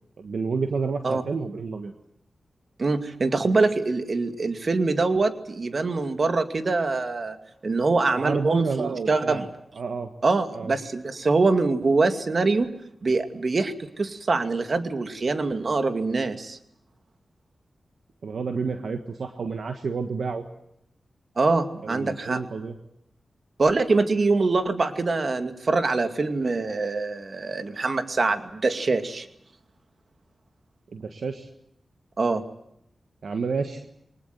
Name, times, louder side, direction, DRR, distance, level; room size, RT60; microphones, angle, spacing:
voice 1, 0.2-1.9 8.2-9.4 9.7-10.1 10.5-10.7 18.2-20.4 21.8-22.7 30.9-31.5 33.2-33.8, right 4 dB, 75° right, 6 dB, 1.5 m, -29 dB
voice 2, 2.8-7.4 7.6-9.5 10.2-12.7 13.0-16.6 21.4-22.4 23.6-29.3 32.2-32.4, right 3 dB, 55° right, 7 dB, 2.4 m, -24 dB
22.5 x 20.5 x 9.4 m, 0.76 s
cardioid pair, 40°, 0 cm